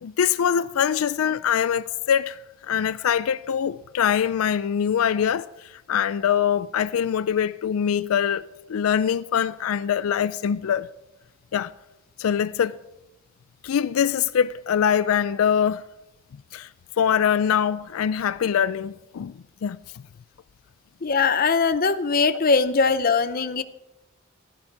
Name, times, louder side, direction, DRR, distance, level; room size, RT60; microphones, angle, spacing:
voice 1, 0.0-2.4 2.7-8.4 8.7-10.9 11.5-11.7 12.2-12.8 13.6-15.8 16.5-16.7 17.0-19.8, left 8 dB, 85° left, 0.4 m, -23 dB
voice 2, 21.0-23.6, left 4 dB, 45° left, 0.6 m, -21 dB
15.0 x 11.5 x 4.7 m
head